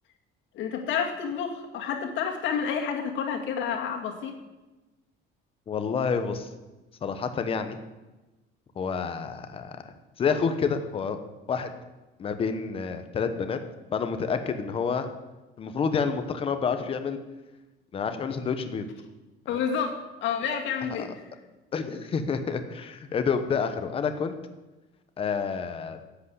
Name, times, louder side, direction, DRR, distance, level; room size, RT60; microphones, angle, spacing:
voice 1, 0.5-4.3 19.5-21.2, left 7 dB, 60° left, 2 dB, 2.1 m, -29 dB
voice 2, 5.7-6.5 7.0-7.8 8.8-9.8 10.2-11.2 11.5-11.7 12.2-13.6 13.9-15.1 15.6-17.2 17.9-18.9 19.5-19.6 21.7-24.3 25.2-26.0, left 6 dB, 25° left, 8 dB, 0.9 m, -28 dB
11.0 x 8.3 x 8.2 m, 1.1 s
cardioid pair, 180°, 21 cm